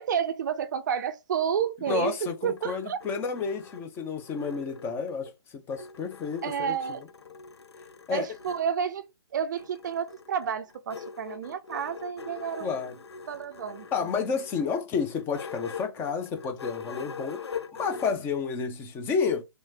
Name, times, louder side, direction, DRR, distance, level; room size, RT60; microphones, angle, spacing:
voice 1, 0.0-3.0 6.4-7.0 8.1-9.1 9.3-12.7 13.3-14.2, right 8 dB, 40° right, 0.5 m, -30 dB
voice 2, 1.9-6.7 8.1-8.3 12.6-12.9 13.9-17.4 17.7-19.4, left 5 dB, 15° left, 0.6 m, -30 dB
sound 1, 2.3-5.3 5.7-8.7 9.6-18.1, left 6 dB, 65° left, 0.6 m, -43 dB
3.3 x 3.1 x 3.3 m
figure-of-eight pair, 130°, 15 cm